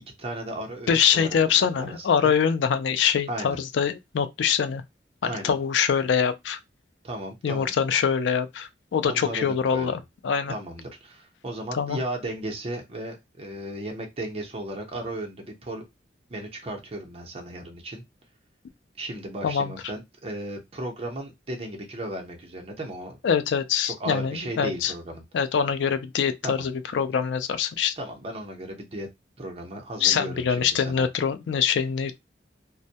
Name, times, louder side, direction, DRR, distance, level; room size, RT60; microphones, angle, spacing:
voice 1, 0.2-2.3 3.3-3.6 5.2-5.6 7.0-7.7 9.0-10.0 10.5-15.8 16.3-18.0 19.0-23.2 24.0-25.2 26.4-26.7 28.0-29.1 29.4-31.1, right 1 dB, 35° right, 0.7 m, -35 dB
voice 2, 0.9-4.8 5.2-6.6 7.4-10.5 11.7-12.0 19.4-19.7 23.2-24.9 25.3-27.9 30.0-32.2, left 7 dB, 85° left, 0.4 m, -24 dB
2.1 x 2.1 x 2.7 m
head